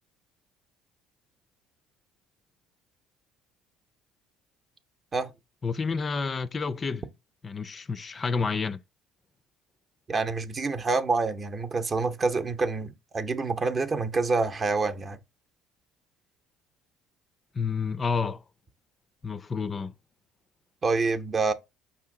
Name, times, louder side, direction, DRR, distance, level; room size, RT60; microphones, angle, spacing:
voice 1, 5.6-7.0 7.4-8.8 17.5-18.4 19.2-19.9, left 5 dB, 35° left, 0.3 m, -29 dB
voice 2, 10.1-15.2 20.8-21.5, right 4 dB, 35° right, 0.6 m, -27 dB
5.1 x 2.8 x 3.7 m
supercardioid pair, 75°, 0 cm